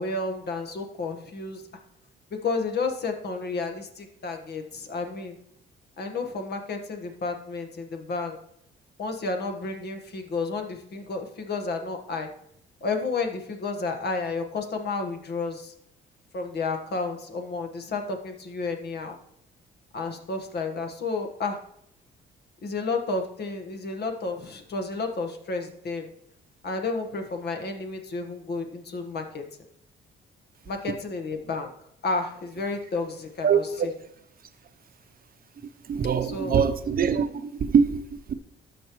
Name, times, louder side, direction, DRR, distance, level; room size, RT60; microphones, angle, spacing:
voice 1, 0.0-1.6 2.4-5.4 6.0-8.4 9.0-12.3 12.8-15.7 16.3-19.2 19.9-21.6 22.6-26.1 26.6-29.4 30.7-31.7 32.0-33.6 36.3-36.6, left 3 dB, 55° left, 5 dB, 1.4 m, -31 dB
voice 2, 33.4-33.9 35.8-38.3, right 6 dB, 45° right, 10 dB, 0.8 m, -23 dB
13.0 x 5.2 x 3.1 m, 0.72 s
cardioid pair, 90°, 20 cm